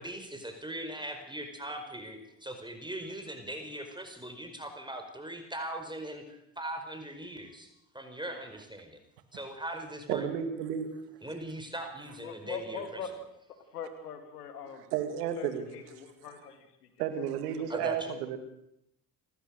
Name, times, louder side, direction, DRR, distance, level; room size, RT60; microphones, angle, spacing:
voice 1, 0.0-9.0 9.3-10.2 11.2-12.8 17.7-18.1, right 1 dB, 10° right, 6 dB, 5.0 m, -40 dB
voice 2, 10.1-10.9 14.9-15.7 17.0-18.4, right 9 dB, 75° right, 9 dB, 2.2 m, -32 dB
voice 3, 12.2-13.4 13.7-14.9 15.4-16.9 17.6-17.7, left 5 dB, 85° left, 8 dB, 2.3 m, -42 dB
29.0 x 14.5 x 6.6 m, 0.78 s
figure-of-eight pair, 45°, 46 cm